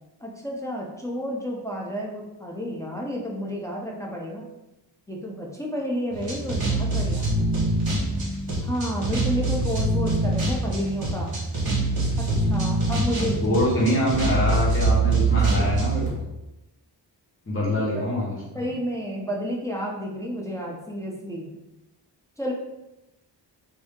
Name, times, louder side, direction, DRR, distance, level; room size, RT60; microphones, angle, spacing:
voice 1, 0.2-4.4 5.1-7.3 8.6-11.3 12.2-13.6 15.4-15.5 17.6-18.1 18.5-21.5 22.4-22.5, equal, 10° left, -2 dB, 0.4 m, -31 dB
sound 1, 6.1-16.1, right 2 dB, 55° right, 1.2 m, -24 dB
voice 2, 13.4-16.2 17.5-18.6, equal, 30° left, -6 dB, 1.2 m, -24 dB
2.7 x 2.6 x 3.5 m, 0.96 s
wide cardioid pair, 135°, 42 cm